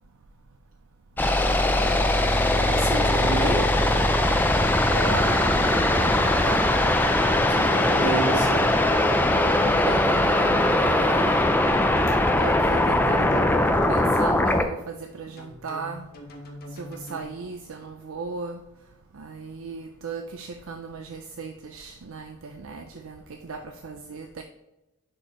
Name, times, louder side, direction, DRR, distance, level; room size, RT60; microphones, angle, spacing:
sound 1, 1.2-14.6, left 1 dB, 10° left, 0.5 m, -21 dB
voice 1, 2.5-3.7 7.4-8.7, right 2 dB, 40° right, -3 dB, 2.2 m, -29 dB
voice 2, 4.9-6.7 9.6-11.7 12.4-16.1 16.7-18.6 19.1-24.4, right 4 dB, 60° right, 6 dB, 0.5 m, -36 dB
sound 2, 7.8-8.5 8.9-9.5 10.4-13.4 13.8-14.5 15.4-17.2, equal, 45° left, 1.1 m, -41 dB
10.5 x 4.5 x 3.0 m, 0.97 s
head